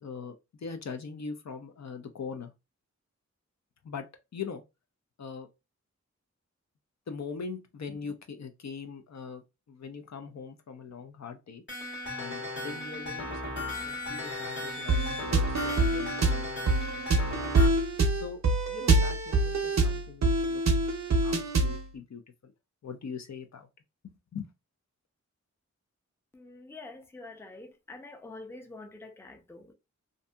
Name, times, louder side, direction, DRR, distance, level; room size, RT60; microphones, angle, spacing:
voice 1, 0.0-2.5 3.8-4.1 4.3-4.6 5.2-5.5 7.1-9.4 9.7-11.6 12.1-16.8 17.1-17.5 18.2-18.4 18.7-20.6 21.2-22.5 22.8-23.7 24.0-24.5, left 5 dB, 60° left, 0.5 m, -41 dB
sound 1, 11.7-17.7, left 2 dB, 40° left, 1.3 m, -36 dB
sound 2, 14.9-21.8, right 2 dB, 65° right, 0.5 m, -25 dB
voice 2, 26.3-29.7, left 2 dB, 10° left, 0.5 m, -46 dB
2.6 x 2.6 x 2.2 m
wide cardioid pair, 85°, 30 cm